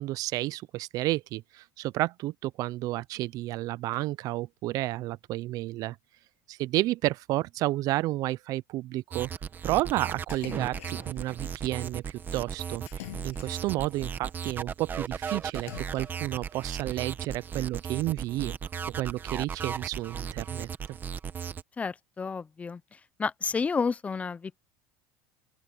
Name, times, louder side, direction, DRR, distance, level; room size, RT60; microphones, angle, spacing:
voice 1, 0.0-6.0 6.5-9.3 9.6-18.6 18.9-21.0, right 17 dB, 50° right, 0.5 m, -31 dB
sound 1, 9.1-21.6, right 7 dB, 25° right, 1.2 m, -36 dB
Splash splatter, 10.3-11.3 12.9-13.9 15.5-16.4, left 19 dB, 90° left, 7.5 m, -45 dB
voice 2, 21.8-24.6, left 5 dB, 20° left, 0.6 m, -31 dB
open air
supercardioid pair, 125°, 8 cm